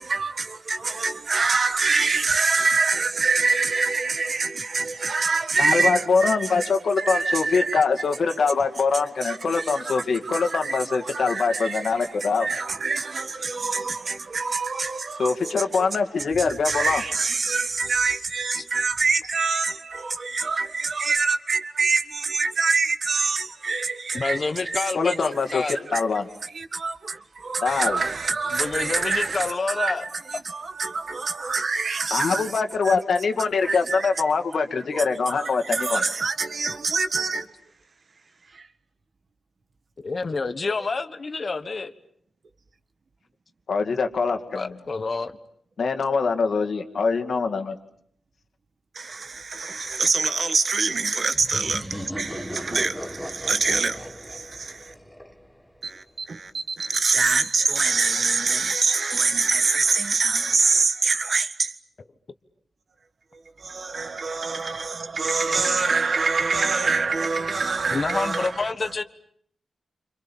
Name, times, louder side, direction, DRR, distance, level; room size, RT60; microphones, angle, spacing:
voice 1, 0.0-7.8 9.2-15.9 16.5-25.1 25.5-26.1 26.4-32.4 32.8-33.0 33.6-34.1 34.9-37.5 38.5-38.7 48.9-54.9 55.8-61.7 63.6-68.6, right 4 dB, 45° right, 1.6 m, -25 dB
voice 2, 5.6-12.5 15.2-17.0 24.9-25.6 25.9-26.3 27.6-28.0 32.1-36.0 43.7-44.6 45.8-47.8, left 4 dB, 65° left, 2.3 m, -23 dB
voice 3, 24.1-25.8 28.5-30.1 40.0-41.9 44.5-45.4 67.9-69.0, left 4 dB, 40° left, 1.3 m, -28 dB
sound 1, 51.3-55.9, equal, 5° left, 1.5 m, -37 dB
28.5 x 27.0 x 7.3 m
wide cardioid pair, 130°, 0 cm